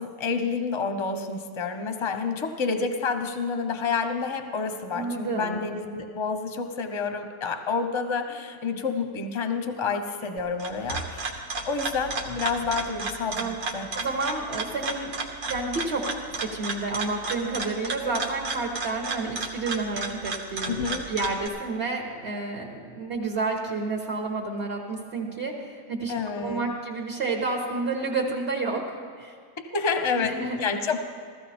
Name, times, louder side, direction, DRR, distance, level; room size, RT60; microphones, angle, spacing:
voice 1, 0.0-11.4 11.6-13.9 20.6-21.1 26.1-26.7 29.7-31.0, left 5 dB, 25° left, 7 dB, 0.7 m, -29 dB
voice 2, 4.9-5.6 13.4-13.6 13.9-15.1 15.4-16.0 16.5-20.8 21.1-29.3 30.1-30.6, right 3 dB, 45° right, 0 dB, 1.4 m, -30 dB
sound 1, 10.4-21.5, right 3 dB, 85° right, 1.7 m, -33 dB
15.0 x 14.5 x 4.3 m, 2.1 s
omnidirectional pair, 1.6 m